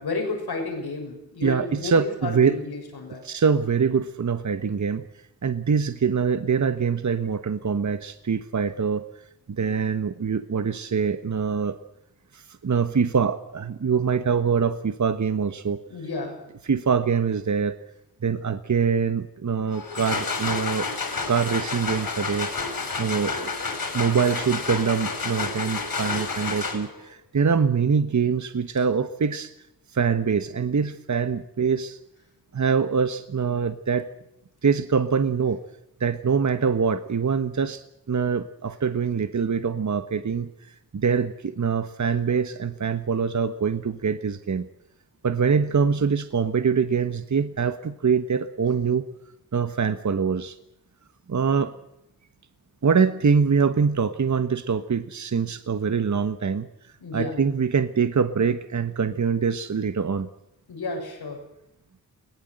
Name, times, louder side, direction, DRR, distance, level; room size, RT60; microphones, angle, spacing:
voice 1, 0.0-3.2 15.9-16.4 57.0-57.4 60.7-61.4, left 3 dB, 85° left, 2 dB, 6.8 m, -31 dB
voice 2, 1.4-2.6 3.2-5.0 5.4-9.0 9.5-11.8 12.3-15.8 16.6-17.7 18.2-20.9 21.3-22.5 23.0-23.5 23.9-29.5 29.9-32.0 32.5-34.1 34.6-35.6 36.0-40.5 40.9-44.6 45.2-49.0 49.5-50.6 51.3-51.7 52.8-56.7 57.1-60.3, right 6 dB, 50° right, 10 dB, 1.3 m, -24 dB
sound 1, 19.7-27.1, left 4 dB, 65° left, 6.4 m, -30 dB
22.0 x 18.0 x 7.9 m, 0.83 s
cardioid pair, 60°, 38 cm